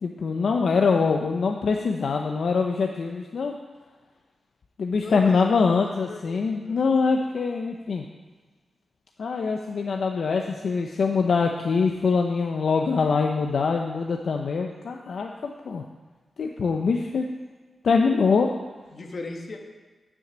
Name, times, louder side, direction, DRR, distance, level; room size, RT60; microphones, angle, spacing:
voice 1, 0.0-3.6 4.8-8.0 9.2-15.8 16.4-17.3 17.8-18.5, left 4 dB, 65° left, 2 dB, 0.6 m, -24 dB
voice 2, 4.9-5.5 6.1-7.0 18.3-18.4 18.9-19.6, left 3 dB, 45° left, 2 dB, 1.4 m, -38 dB
10.0 x 6.3 x 6.2 m, 1.3 s
wide cardioid pair, 125°, 0 cm